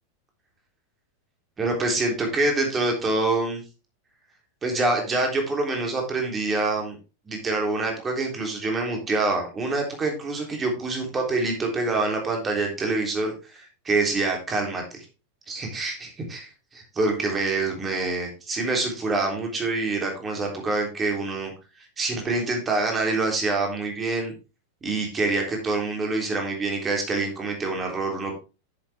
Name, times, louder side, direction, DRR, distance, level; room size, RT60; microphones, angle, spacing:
voice 1, 1.6-3.6 4.6-7.0 7.3-15.1 15.5-21.5 21.8-24.3 24.8-28.4, right 3 dB, 20° right, 2 dB, 3.4 m, -26 dB
10.0 x 7.5 x 3.5 m, 0.31 s
figure-of-eight pair, 90°, 0 cm